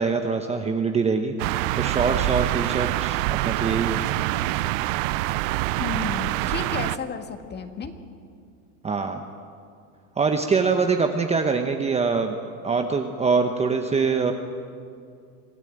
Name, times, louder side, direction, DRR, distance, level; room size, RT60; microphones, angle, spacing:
voice 1, 0.0-1.3 1.7-4.0 8.8-9.2 10.2-12.4 12.6-14.3, right 5 dB, 15° right, 5 dB, 0.9 m, -24 dB
sound 1, 1.4-7.0, right 18 dB, 55° right, 0.7 m, -25 dB
voice 2, 5.8-7.9, left 5 dB, 20° left, 7 dB, 1.7 m, -32 dB
25.0 x 15.5 x 9.0 m, 2.4 s
supercardioid pair, 135°, 47 cm